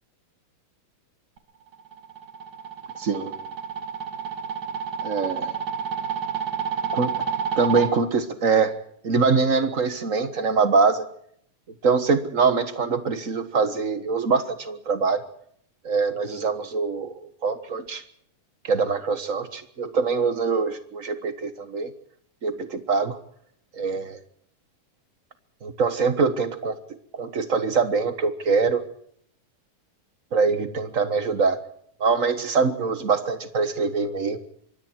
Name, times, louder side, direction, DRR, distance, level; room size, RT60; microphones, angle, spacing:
sound 1, 1.7-7.9, right 7 dB, 60° right, 3.2 m, -29 dB
voice 1, 3.0-3.3 5.0-5.5 6.9-7.2 7.6-11.1 11.8-15.2 15.8-18.0 18.6-21.9 22.4-23.2 23.7-24.2 25.6-26.8 27.1-28.8 30.3-31.6 32.0-34.4, right 4 dB, 80° right, 10 dB, 0.7 m, -23 dB
26.0 x 24.0 x 4.6 m, 0.65 s
omnidirectional pair, 3.7 m